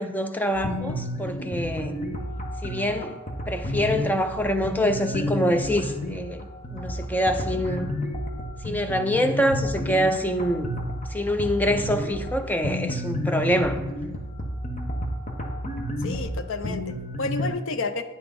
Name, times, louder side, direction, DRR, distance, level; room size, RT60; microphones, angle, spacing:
voice 1, 0.0-1.9 2.6-3.2 3.5-6.5 6.7-7.9 8.6-10.7 11.1-13.8, equal, 10° left, 0.5 m, -25 dB
sound 1, 0.5-17.5, equal, 35° left, 1.1 m, -31 dB
voice 2, 16.0-18.0, left 3 dB, 60° left, 0.6 m, -30 dB
9.7 x 5.9 x 5.2 m
head